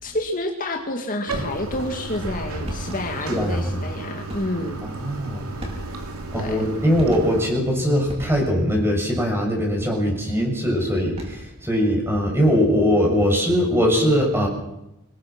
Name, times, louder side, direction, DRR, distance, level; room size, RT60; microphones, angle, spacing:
voice 1, 0.0-4.8 6.3-6.6, left 1 dB, 40° left, 3 dB, 2.1 m, -29 dB
Bathtub (filling or washing), 1.3-7.5, right 2 dB, 80° right, 3.3 m, -33 dB
sound 1, 2.6-3.3 4.3-4.7 5.6-6.2 7.0-7.6 8.1-8.7 11.0-11.6, equal, 30° right, 5.2 m, -36 dB
voice 2, 3.3-3.7 4.8-5.4 6.3-14.5, equal, 10° right, 0 dB, 7.0 m, -21 dB
26.0 x 21.5 x 6.1 m, 0.86 s
head